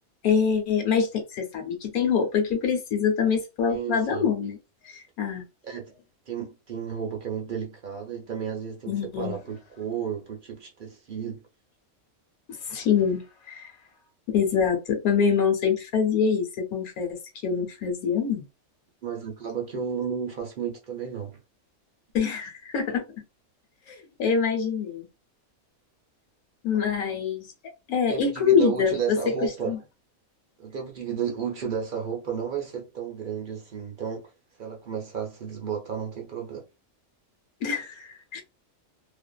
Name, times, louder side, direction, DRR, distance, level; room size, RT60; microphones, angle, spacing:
voice 1, 0.2-4.6 4.8-5.4 8.9-9.4 12.7-13.7 14.3-18.4 22.1-23.0 23.9-25.1 26.6-27.4 27.9-29.8 37.6-38.4, left 6 dB, 85° left, 1.3 m, -25 dB
voice 2, 3.7-4.3 5.6-5.9 6.3-11.4 19.0-21.4 28.1-29.7 30.6-34.3 34.6-36.7, right 7 dB, 55° right, 0.5 m, -32 dB
2.5 x 2.4 x 2.2 m
omnidirectional pair, 1.5 m